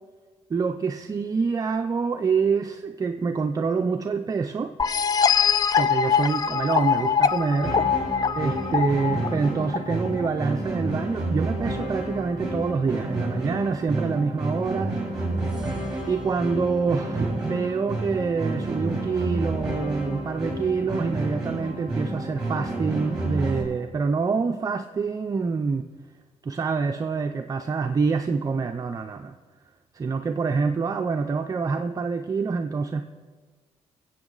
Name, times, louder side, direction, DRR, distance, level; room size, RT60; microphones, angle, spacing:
voice 1, 0.5-4.7 5.8-7.8 8.4-15.0 16.1-25.8 26.4-29.4 29.9-33.0, right 5 dB, 30° right, 5 dB, 0.5 m, -26 dB
sound 1, 4.8-10.3, left 6 dB, 30° left, 0.4 m, -23 dB
sound 2, 7.6-23.6, right 1 dB, 5° right, 3.4 m, -30 dB
22.5 x 8.0 x 3.9 m, 1.5 s
cardioid pair, 125°, 12 cm